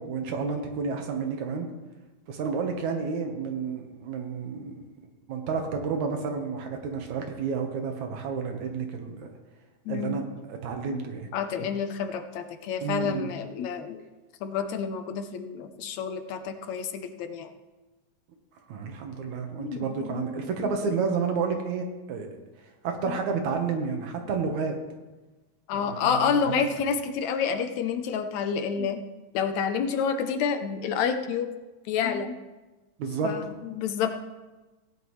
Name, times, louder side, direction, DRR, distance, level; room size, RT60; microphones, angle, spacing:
voice 1, 0.0-1.7 2.3-4.8 5.3-9.3 9.9-11.3 12.8-13.3 18.7-22.3 22.8-24.8 25.7-26.6 33.0-33.3, right 5 dB, 75° right, 4 dB, 2.6 m, -30 dB
voice 2, 9.9-10.2 10.9-14.0 14.4-17.5 19.6-20.2 20.6-20.7 23.1-23.2 25.7-29.0 29.3-31.5 31.9-32.4 33.2-34.1, left 6 dB, 75° left, 7 dB, 2.0 m, -29 dB
17.0 x 10.5 x 3.2 m, 1.2 s
omnidirectional pair, 3.4 m